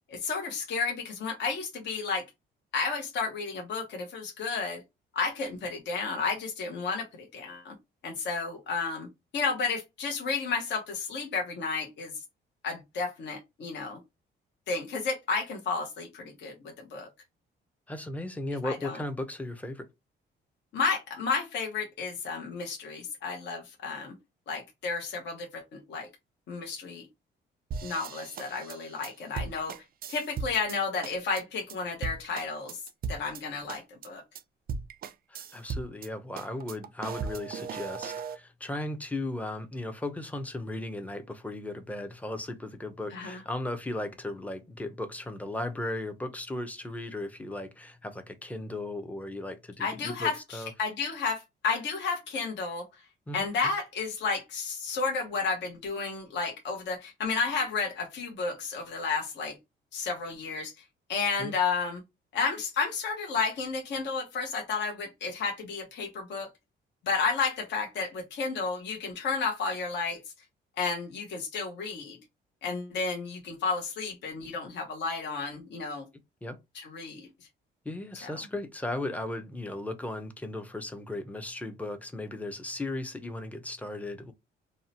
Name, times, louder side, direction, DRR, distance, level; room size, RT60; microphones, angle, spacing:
voice 1, 0.1-2.2 2.7-4.8 5.1-7.7 8.0-9.1 9.3-12.1 12.6-14.0 14.7-17.1 18.6-19.0 20.7-24.1 24.5-26.1 26.5-27.0 27.8-29.7 30.1-32.8 33.1-34.2 43.1-43.4 49.8-52.8 53.3-59.5 59.9-60.7 61.1-62.0 62.3-66.5 67.1-70.2 70.8-72.2 72.6-76.0 76.7-77.3 78.2-78.3, left 4 dB, 65° left, 0.8 m, -32 dB
voice 2, 17.9-19.9 35.5-50.7 53.3-53.4 61.4-61.5 76.4-76.6 77.9-84.3, left 2 dB, 5° left, 0.5 m, -36 dB
sound 1, 27.7-30.8 31.0-31.4 31.7-31.8 32.0-33.4 33.7-34.1 34.4-34.5 34.7-36.1 36.4-38.4, right 5 dB, 50° right, 0.4 m, -37 dB
2.7 x 2.1 x 2.7 m
cardioid pair, 90°, 20 cm